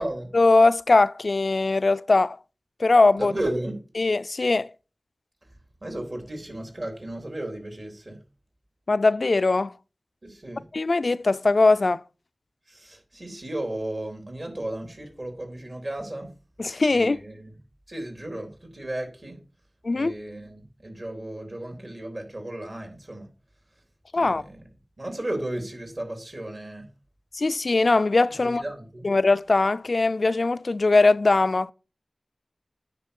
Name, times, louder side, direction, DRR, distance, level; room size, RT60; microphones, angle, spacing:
voice 1, 0.3-2.4 2.8-3.3 4.0-4.7 8.9-9.7 10.7-12.0 16.6-17.2 19.8-20.1 24.1-24.4 27.3-28.6 29.0-31.7, left 3 dB, 75° left, 0.4 m, -20 dB
voice 2, 3.2-3.8 5.8-8.2 10.2-10.6 12.7-16.3 16.9-17.5 17.9-19.4 19.9-23.3 24.2-24.7 25.0-26.9 28.4-29.1, right 1 dB, 55° right, 3.7 m, -34 dB
9.7 x 5.9 x 5.3 m
wide cardioid pair, 45°, 0 cm